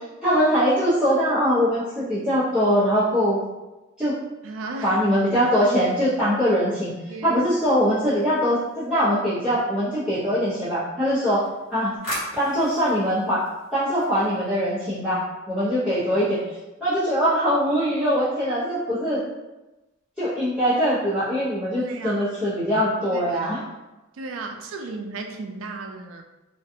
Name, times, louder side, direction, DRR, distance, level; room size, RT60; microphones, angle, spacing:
voice 1, 0.2-3.4 4.0-4.1 4.8-6.9 7.2-11.4 11.7-11.9 12.4-16.4 16.8-19.2 20.2-23.6, equal, 5° right, -15 dB, 0.6 m, -22 dB
voice 2, 4.4-5.0 7.1-7.4 21.8-22.2 23.1-23.5 24.2-26.2, right 3 dB, 80° right, 4 dB, 0.4 m, -35 dB
sound 1, 7.2-9.0 11.3-14.6, equal, 75° left, 1.1 m, -39 dB
2.4 x 2.3 x 2.6 m, 1.1 s
head